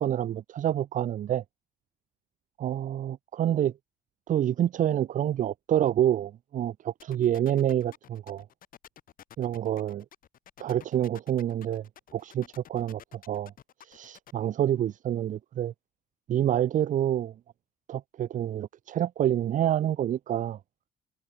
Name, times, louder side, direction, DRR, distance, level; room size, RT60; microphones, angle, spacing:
voice 1, 0.0-1.4 2.6-3.7 4.3-8.4 9.4-10.0 10.6-11.8 12.1-13.0 13.3-13.5 13.8-15.7 16.3-17.3 17.9-20.6, right 11 dB, 50° right, 0.8 m, -27 dB
sound 1, 7.0-14.3, left 10 dB, 55° left, 3.6 m, -51 dB
cardioid pair, 110°, 17 cm